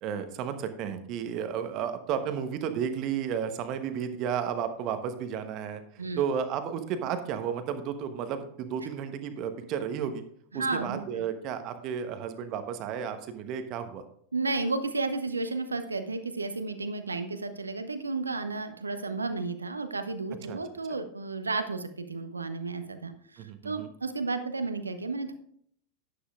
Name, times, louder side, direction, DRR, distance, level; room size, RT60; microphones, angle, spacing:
voice 1, 0.0-10.2 10.5-14.0 20.5-20.6 23.4-23.9, right 8 dB, 40° right, 8 dB, 1.0 m, -33 dB
voice 2, 10.5-11.0 14.3-25.3, right 3 dB, 75° right, 9 dB, 0.9 m, -32 dB
11.5 x 10.0 x 2.4 m, 0.66 s
figure-of-eight pair, 90°, 0 cm